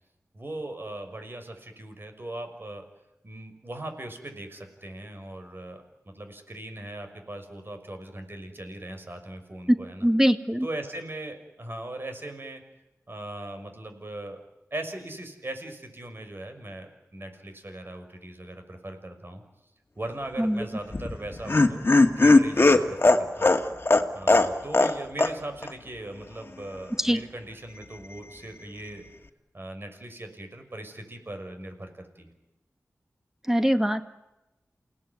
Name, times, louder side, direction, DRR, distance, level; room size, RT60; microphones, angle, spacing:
voice 1, 0.3-2.8 3.2-10.1 10.6-12.6 13.1-14.4 14.7-19.4 20.0-21.8 22.2-23.5 24.1-29.0 29.5-32.3, right 1 dB, 40° right, 6 dB, 5.9 m, -39 dB
voice 2, 10.0-10.7 20.4-20.6 27.0-27.2 33.5-34.1, equal, 10° right, 8 dB, 1.9 m, -22 dB
Laughter, 20.9-24.9 25.2-25.3 25.6-25.7, left 2 dB, 40° left, 2.1 m, -19 dB
29.0 x 18.0 x 9.6 m, 0.96 s
wide cardioid pair, 65°, 6 cm